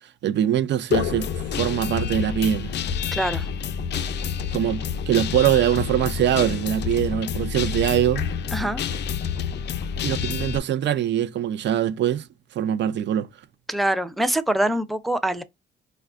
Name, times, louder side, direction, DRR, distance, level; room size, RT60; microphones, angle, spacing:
voice 1, 0.2-1.3 1.5-2.7 4.5-8.2 10.0-12.3 12.6-13.3, right 11 dB, 65° right, 0.5 m, -23 dB
Guitar, 0.9-10.6, left 7 dB, 60° left, 0.5 m, -28 dB
voice 2, 3.1-3.5 8.5-8.8 13.7-15.4, right 1 dB, ahead, 0.5 m, -24 dB
4.5 x 2.3 x 2.4 m
cardioid pair, 90°, 20 cm